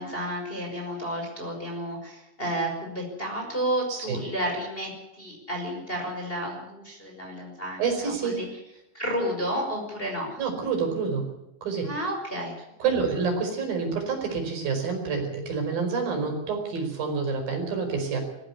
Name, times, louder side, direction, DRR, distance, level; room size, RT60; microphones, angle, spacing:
voice 1, 0.0-8.5 8.9-10.4 11.8-12.6, equal, 10° left, 0 dB, 5.3 m, -31 dB
voice 2, 7.8-8.4 10.4-11.3 11.6-11.9 12.8-18.2, right 5 dB, 50° right, 3 dB, 6.6 m, -28 dB
20.0 x 15.0 x 9.9 m, 0.92 s
omnidirectional pair, 5.3 m